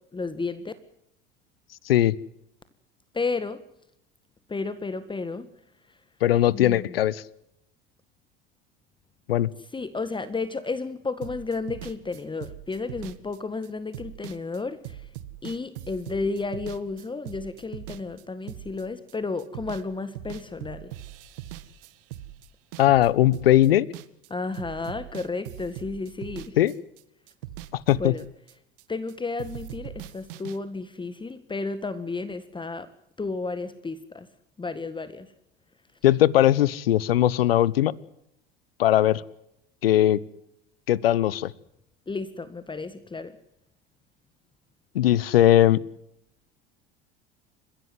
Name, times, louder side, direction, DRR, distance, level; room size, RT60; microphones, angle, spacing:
voice 1, 0.1-0.7 3.1-3.6 4.5-5.5 6.5-7.0 9.7-15.1 15.4-20.9 24.3-26.6 27.9-28.2 28.9-32.9 33.2-34.3 34.6-35.3 42.1-43.3, left 3 dB, 15° left, 12 dB, 1.8 m, -32 dB
voice 2, 6.2-7.2 9.3-9.5 22.8-23.9 26.6-26.7 27.9-28.1 36.0-37.9 38.8-39.2 39.8-40.2 40.9-41.5 44.9-45.8, left 13 dB, 80° left, 23 dB, 1.1 m, -19 dB
sound 1, 11.2-19.1 19.4-19.9 20.1-24.3 24.5-29.1 29.4-30.6, right 13 dB, 70° right, 1.9 m, -41 dB
30.0 x 16.5 x 7.8 m, 0.80 s
hypercardioid pair, 75°, 29 cm